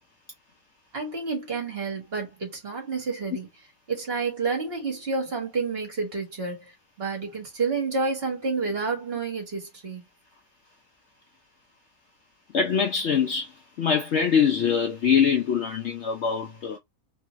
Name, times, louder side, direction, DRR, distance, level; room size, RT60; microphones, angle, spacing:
voice 1, 0.9-3.5 3.9-6.7 7.0-10.0, right 4 dB, 40° right, 1.3 m, -29 dB
voice 2, 12.5-13.5 13.8-16.8, left 7 dB, 90° left, 0.6 m, -23 dB
3.1 x 2.7 x 3.0 m
omnidirectional pair, 1.9 m